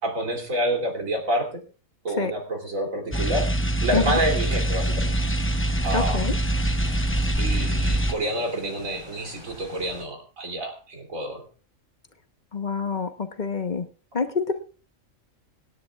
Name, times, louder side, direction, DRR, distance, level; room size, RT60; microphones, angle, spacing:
voice 1, 0.0-1.6 2.0-3.5 3.8-5.2 5.8-6.2 7.4-11.4, right 1 dB, 85° right, 2 dB, 3.4 m, -28 dB
sound 1, 3.1-8.1, right 1 dB, 10° left, 0.6 m, -24 dB
sound 2, 3.5-10.0, right 1 dB, 20° right, 4.4 m, -46 dB
voice 2, 5.9-6.3 12.5-13.9 14.1-14.6, left 4 dB, 40° left, 8 dB, 1.1 m, -26 dB
26.0 x 10.0 x 2.4 m, 0.37 s
omnidirectional pair, 1.4 m